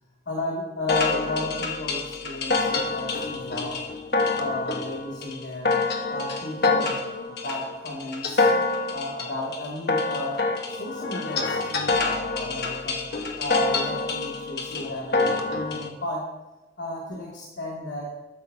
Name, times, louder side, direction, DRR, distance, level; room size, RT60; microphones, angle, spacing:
voice 1, 0.3-3.8 4.4-5.8 6.1-7.0 7.2-8.5 8.9-10.4 10.7-13.0 13.4-16.3 16.8-18.2, left 2 dB, 85° left, -4 dB, 2.5 m, -33 dB
sound 1, 0.9-15.9, left 3 dB, 60° left, 1.3 m, -26 dB
13.5 x 12.5 x 2.8 m, 1.1 s
head